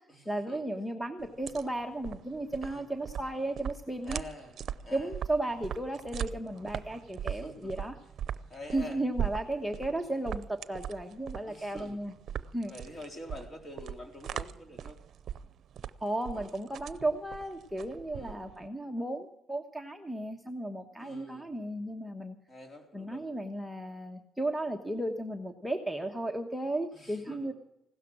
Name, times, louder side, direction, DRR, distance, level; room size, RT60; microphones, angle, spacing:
voice 1, 0.2-4.2 4.9-8.0 8.7-12.1 12.5-12.7 16.0-22.4 22.9-27.5, right 1 dB, ahead, 6 dB, 1.2 m, -34 dB
sound 1, 1.2-18.7, right 9 dB, 65° right, 0.6 m, -40 dB
voice 2, 4.0-4.6 4.8-5.1 7.3-7.9 8.5-9.0 11.5-12.0 12.7-15.0 16.3-16.5 18.1-18.4 21.0-21.5 22.5-23.3 26.9-27.5, left 1 dB, 30° left, 4 dB, 3.9 m, -46 dB
16.5 x 12.5 x 6.2 m, 0.84 s
cardioid pair, 90°, 0 cm